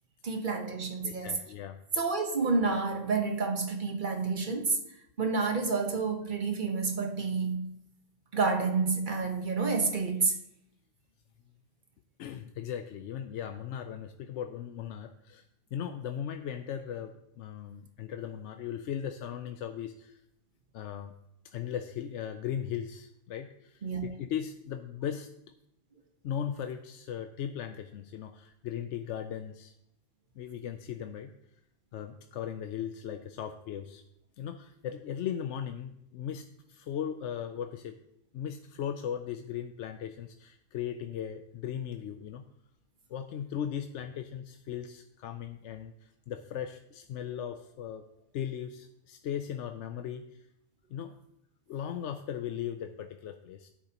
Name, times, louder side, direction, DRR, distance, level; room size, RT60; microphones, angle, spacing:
voice 1, 0.2-1.4 1.9-4.8 5.2-7.7 8.3-10.3 23.8-24.0, right 4 dB, 45° right, 1.2 m, -29 dB
voice 2, 1.0-1.8 12.2-15.4 15.7-20.2 20.7-21.1 21.4-25.3 26.2-29.7 30.4-31.3 31.9-34.0 34.4-38.0 38.3-42.4 43.1-48.0 48.3-50.5 50.9-51.2 51.7-53.7, left 9 dB, 75° left, 0.9 m, -38 dB
12.0 x 10.0 x 2.9 m
omnidirectional pair, 1.2 m